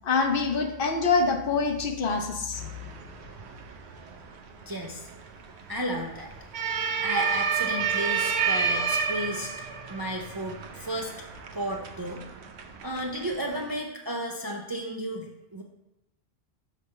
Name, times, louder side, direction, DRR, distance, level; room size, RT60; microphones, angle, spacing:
voice 1, 0.0-2.7, left 4 dB, 60° left, 5 dB, 0.8 m, -25 dB
sound 1, 2.5-13.8, right 6 dB, 85° right, 0.9 m, -31 dB
voice 2, 4.7-5.1 5.7-6.3 7.0-9.5 9.9-11.2 11.5-12.2 12.8-15.6, equal, 30° right, 0 dB, 0.4 m, -33 dB
6.1 x 3.2 x 5.5 m, 0.94 s
omnidirectional pair, 1.1 m